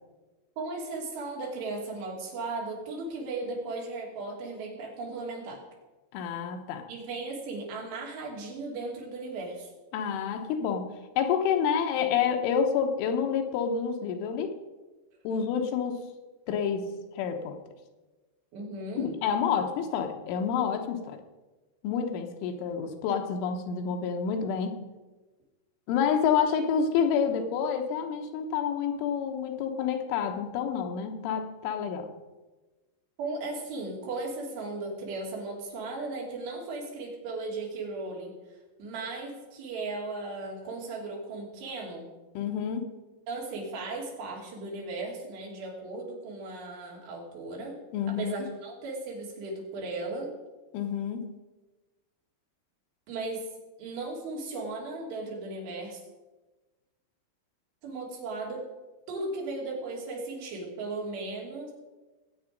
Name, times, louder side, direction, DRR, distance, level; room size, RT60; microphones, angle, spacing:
voice 1, 0.6-5.6 6.9-9.7 18.5-19.1 33.2-38.3 38.8-42.1 43.3-47.8 48.1-50.3 53.1-53.5 53.8-56.0 57.8-58.6 59.1-61.7, right 3 dB, 65° right, -2 dB, 4.8 m, -36 dB
voice 2, 6.1-6.9 9.9-10.9 11.2-14.5 15.3-16.1 16.5-16.9 17.1-17.6 19.0-21.2 21.8-24.8 25.9-32.1 42.4-42.9 47.9-48.5 50.7-51.3, left 7 dB, 80° left, 5 dB, 3.5 m, -28 dB
20.0 x 8.1 x 5.3 m, 1.2 s
omnidirectional pair, 5.6 m